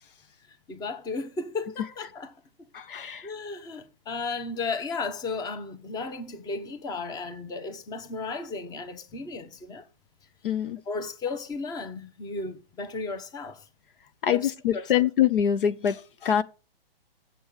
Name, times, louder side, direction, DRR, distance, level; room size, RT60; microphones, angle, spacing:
voice 1, 0.7-2.3 3.2-9.9 10.9-13.7 14.2-14.9, left 3 dB, 15° left, 0.9 m, -34 dB
voice 2, 2.7-3.3 10.4-10.8 14.2-16.4, left 9 dB, 65° left, 0.9 m, -24 dB
7.8 x 7.0 x 6.5 m
hypercardioid pair, 135°, 29 cm